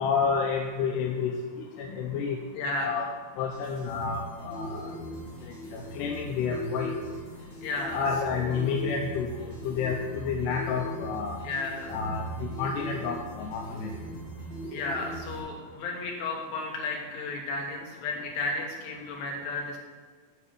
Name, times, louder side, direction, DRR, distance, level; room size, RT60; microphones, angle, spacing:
voice 1, 0.0-1.4 1.8-2.4 2.8-3.0 3.4-4.9 5.7-6.9 7.9-11.4 11.9-13.9, left 5 dB, 80° left, 1 dB, 2.0 m, -30 dB
voice 2, 2.6-3.0 7.6-8.0 8.3-8.7 11.4-12.0 14.7-19.8, left 3 dB, 60° left, 0 dB, 2.4 m, -33 dB
sound 1, 3.4-15.4, right 1 dB, 20° left, 1.9 m, -40 dB
9.4 x 5.4 x 5.1 m, 1.5 s
omnidirectional pair, 4.0 m